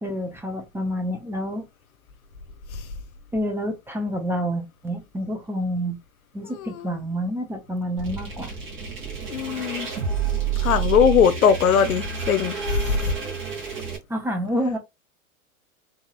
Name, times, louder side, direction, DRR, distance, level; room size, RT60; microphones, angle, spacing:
voice 1, 0.0-1.6 3.3-6.0 6.3-8.6 14.1-14.8, equal, 5° right, 0.4 m, -28 dB
voice 2, 6.5-7.0 9.3-9.9 10.6-13.1, left 7 dB, 85° left, 0.7 m, -20 dB
sound 1, 8.0-14.0, right 7 dB, 30° right, 1.9 m, -29 dB
3.9 x 2.8 x 2.3 m
hypercardioid pair, 110°, 41 cm